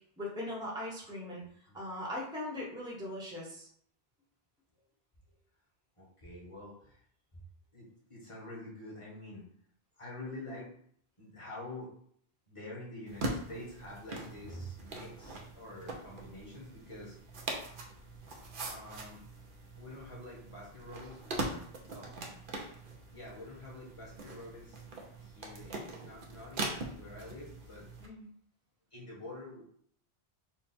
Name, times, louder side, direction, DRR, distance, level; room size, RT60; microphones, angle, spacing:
voice 1, 0.2-1.4 1.7-3.7 28.0-28.2, left 1 dB, 5° right, -4 dB, 1.0 m, -39 dB
voice 2, 1.4-1.8 5.3-5.4 6.0-7.0 7.7-9.4 10.0-10.7 11.2-11.9 12.5-17.2 18.2-19.2 19.8-22.1 23.1-24.8 25.2-27.9 28.9-29.6, left 1 dB, 30° left, -5 dB, 1.5 m, -47 dB
sound 1, 13.1-28.1, right 2 dB, 60° right, 0.9 m, -42 dB
4.4 x 2.3 x 4.3 m, 0.63 s
omnidirectional pair, 1.0 m